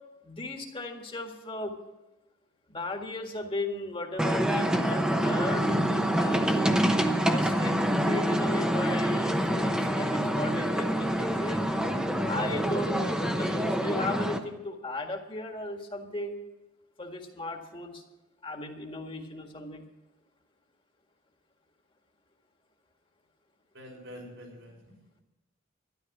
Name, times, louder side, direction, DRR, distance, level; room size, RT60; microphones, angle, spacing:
voice 1, 0.2-1.8 2.7-6.6 7.2-7.8 8.0-11.7 12.2-16.4 17.0-18.0 18.4-19.8, left 2 dB, 25° left, 4 dB, 1.7 m, -36 dB
sound 1, 4.2-14.4, equal, 5° right, 0.9 m, -26 dB
voice 2, 23.7-25.2, equal, 85° right, -1 dB, 6.1 m, -47 dB
13.0 x 11.5 x 6.0 m, 1.0 s
head